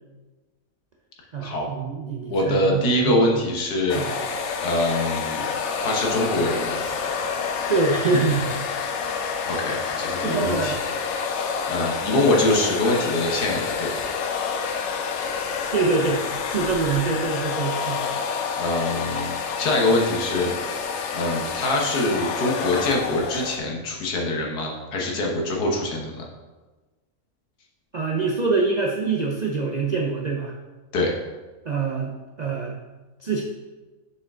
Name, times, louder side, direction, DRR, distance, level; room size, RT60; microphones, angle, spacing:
voice 1, 1.3-3.2 3.9-4.1 5.3-5.5 7.7-8.5 10.2-10.8 15.7-18.0 27.9-30.5 31.7-32.7 33.2-33.4, right 4 dB, 85° right, 0 dB, 0.3 m, -25 dB
voice 2, 2.3-4.0 4.6-5.4 5.8-6.9 9.5-10.8 11.3-14.1 18.6-20.5 21.1-26.3 30.9-31.1, left 2 dB, 85° left, -1 dB, 1.8 m, -24 dB
sound 1, 3.9-23.6, left 6 dB, 65° left, 0.8 m, -28 dB
6.5 x 4.9 x 3.7 m, 1.2 s
omnidirectional pair, 1.6 m